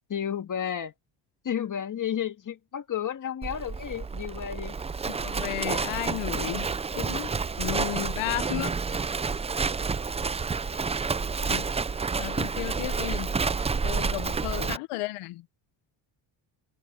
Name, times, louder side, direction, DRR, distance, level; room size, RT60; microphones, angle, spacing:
voice 1, 0.1-0.9 1.4-4.8 14.3-14.7, left 9 dB, 40° left, 2.0 m, -32 dB
Livestock farm animals working animals, 3.4-14.8, right 5 dB, 15° right, 0.4 m, -29 dB
voice 2, 5.1-8.8 11.5-11.7 12.2-13.3 13.8-15.4, left 17 dB, 80° left, 1.1 m, -34 dB
cardioid pair, 105°, 50 cm